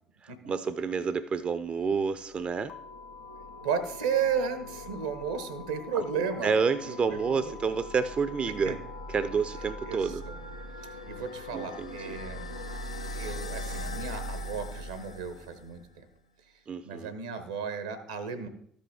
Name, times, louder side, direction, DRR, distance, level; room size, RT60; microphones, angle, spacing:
voice 1, 0.2-2.7 6.4-8.8 9.1-10.2 11.5-12.2 16.7-17.1, right 5 dB, 35° right, 14 dB, 0.4 m, -29 dB
sound 1, 1.7-15.8, left 1 dB, 85° left, 0.5 m, -41 dB
sound 2, 2.7-9.9, left 4 dB, 40° left, 0.6 m, -48 dB
voice 2, 3.6-6.5 6.8-7.6 8.6-8.8 9.9-10.4 11.1-12.5 13.1-16.1 16.8-18.5, right 6 dB, 75° right, 11 dB, 0.8 m, -34 dB
13.0 x 5.3 x 3.4 m, 0.67 s
figure-of-eight pair, 50°, 3 cm